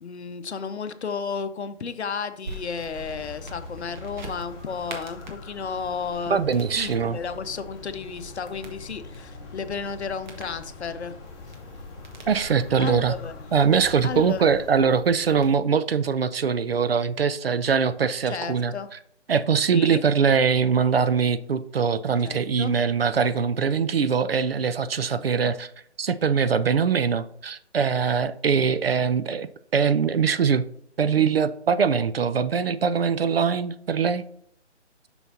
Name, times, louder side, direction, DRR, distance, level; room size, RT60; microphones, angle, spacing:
voice 1, 0.0-6.4 6.8-11.1 12.8-13.5 14.0-14.6 18.3-18.9 19.7-20.0 22.2-22.7 25.1-25.5, left 5 dB, 65° left, 0.8 m, -33 dB
sound 1, 2.4-15.5, right 1 dB, 40° right, 1.5 m, -44 dB
sound 2, 2.9-14.7, left 3 dB, 20° left, 1.8 m, -43 dB
voice 2, 6.3-7.2 12.3-13.1 13.5-18.7 19.3-25.7 26.0-30.6 31.0-34.2, right 6 dB, 55° right, 0.5 m, -22 dB
7.0 x 6.2 x 2.8 m
figure-of-eight pair, 155°, 36 cm